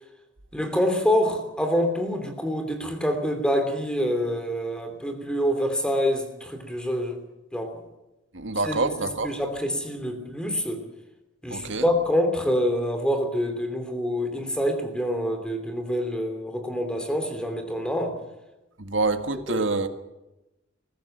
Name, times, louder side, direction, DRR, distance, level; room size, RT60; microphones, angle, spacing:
voice 1, 0.5-7.2 7.5-7.8 8.6-10.8 11.4-18.2 19.3-19.7, equal, 5° left, 6 dB, 3.0 m, -26 dB
voice 2, 8.3-9.3 11.5-11.9 18.8-19.9, right 3 dB, 75° right, 8 dB, 1.7 m, -26 dB
21.0 x 15.5 x 9.0 m, 0.99 s
head